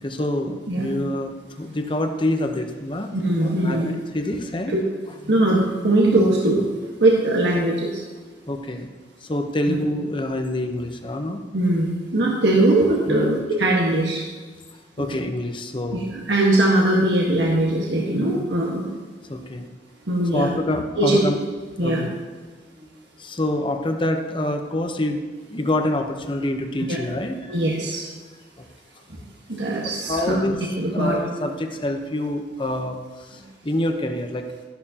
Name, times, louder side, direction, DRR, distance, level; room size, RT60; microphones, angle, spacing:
voice 1, 0.0-3.1 3.4-4.8 8.5-8.9 9.2-11.4 13.1-13.4 15.0-16.1 18.2-18.4 19.3-19.7 20.3-21.4 21.8-22.1 23.2-25.2 25.5-27.6 28.6-28.7 30.0-30.6 30.9-34.5, left 1 dB, 30° left, 5 dB, 0.9 m, -26 dB
voice 2, 3.1-3.9 5.2-6.7 7.0-8.0 9.7-9.8 11.5-14.2 16.1-19.0 20.1-20.5 21.0-21.2 21.8-22.0 26.9-27.0 27.5-28.0 29.5-30.4 30.8-31.2, right 1 dB, 75° right, -3 dB, 1.5 m, -20 dB
13.0 x 11.5 x 2.9 m, 1.4 s
head